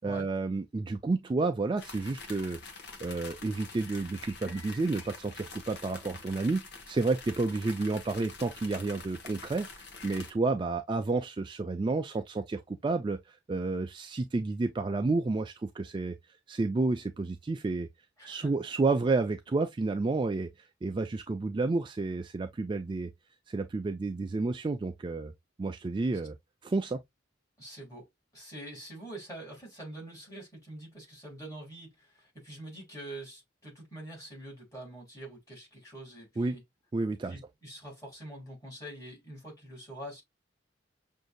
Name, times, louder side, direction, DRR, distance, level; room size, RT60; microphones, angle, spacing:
voice 1, 0.0-2.6 3.0-6.6 6.9-16.2 16.5-17.9 18.2-23.1 23.5-25.3 25.6-26.4 26.6-27.0 36.4-36.6 36.9-37.4, right 3 dB, 25° right, 0.3 m, -30 dB
sound 1, 1.8-10.3, left 4 dB, 60° left, 0.9 m, -46 dB
voice 2, 18.2-18.5 27.6-28.1 28.3-36.6 37.2-40.2, right 1 dB, 20° left, 2.8 m, -45 dB
6.2 x 2.6 x 2.2 m
head